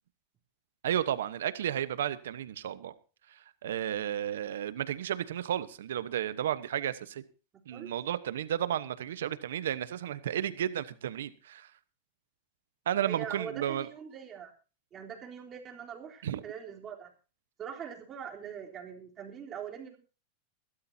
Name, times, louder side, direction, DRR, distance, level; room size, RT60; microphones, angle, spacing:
voice 1, 0.8-2.9 3.3-7.2 7.7-11.7 12.9-13.9 16.2-16.4, right 10 dB, 85° right, 14 dB, 1.1 m, -33 dB
voice 2, 13.1-14.5 14.9-17.1 17.6-20.0, right 8 dB, 30° right, 0 dB, 3.6 m, -42 dB
22.0 x 12.5 x 2.8 m, 0.35 s
supercardioid pair, 130°, 0 cm